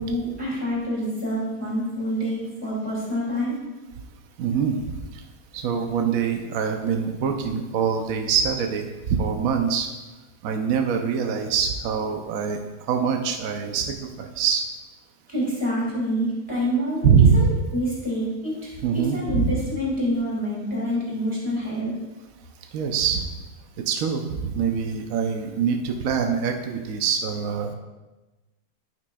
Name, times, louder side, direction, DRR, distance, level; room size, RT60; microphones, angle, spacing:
voice 1, 0.0-3.6 15.3-21.9, equal, 15° left, -7 dB, 2.3 m, -27 dB
voice 2, 4.4-5.0 5.5-8.9 9.2-9.9 10.4-12.6 12.9-14.6 17.0-17.5 18.8-19.5 22.7-23.3 23.9-27.8, right 6 dB, 70° right, 4 dB, 1.1 m, -23 dB
13.5 x 5.9 x 2.3 m, 1.1 s
omnidirectional pair, 1.7 m